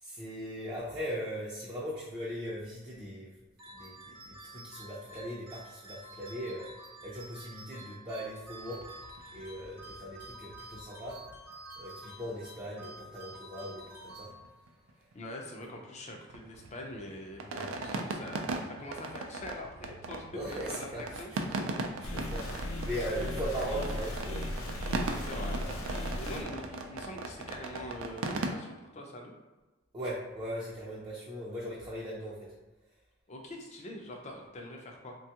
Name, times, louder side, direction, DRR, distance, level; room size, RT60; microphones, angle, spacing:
voice 1, 0.0-3.3 3.7-6.7 7.0-8.9 9.3-11.3 11.8-14.3 17.5-17.7 20.3-21.4 22.0-24.7 25.6-25.7 29.9-32.5, equal, 20° right, -8 dB, 0.5 m, -39 dB
sound 1, 3.6-14.8, right 1 dB, 45° right, 0.8 m, -49 dB
sound 2, 8.6-13.1 13.3-13.4 13.6-13.8 14.1-15.1 15.4-28.5, right 3 dB, 75° right, 0.4 m, -39 dB
voice 2, 15.1-18.5 18.8-21.5 25.2-25.6 26.1-29.3 33.3-35.1, left 1 dB, 35° left, 1 dB, 0.5 m, -44 dB
sound 3, 22.0-26.4, left 1 dB, 80° left, 0.6 m, -36 dB
3.2 x 2.3 x 2.8 m, 1.1 s
head